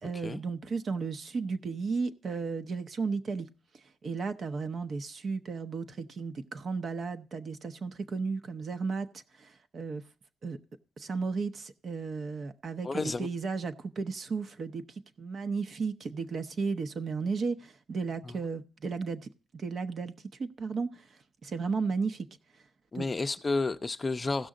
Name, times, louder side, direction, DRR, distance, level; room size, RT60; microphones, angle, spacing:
voice 1, 0.0-3.5 4.0-9.1 9.4-10.0 10.4-10.6 11.0-20.1 20.4-21.2 21.4-22.3 22.9-23.1, right 4 dB, 50° right, 0.7 m, -34 dB
voice 2, 12.8-13.3 18.2-18.4 22.9-24.5, left 3 dB, 25° left, 0.5 m, -31 dB
15.5 x 6.2 x 3.7 m
cardioid pair, 90°, 0 cm